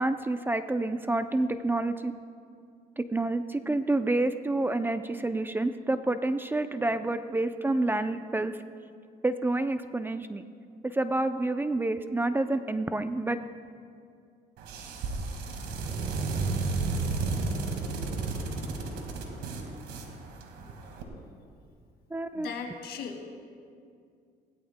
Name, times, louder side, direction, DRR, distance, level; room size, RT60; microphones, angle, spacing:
voice 1, 0.0-2.1 3.0-8.5 9.2-10.4 10.8-13.4 22.1-22.5, right 2 dB, 10° right, 9 dB, 0.5 m, -28 dB
sound 1, 14.6-21.0, right 3 dB, 85° right, 1.9 m, -32 dB
voice 2, 22.4-23.2, left 6 dB, 75° left, 3 dB, 2.0 m, -37 dB
21.0 x 17.0 x 2.2 m, 2.3 s
cardioid pair, 110°, 17 cm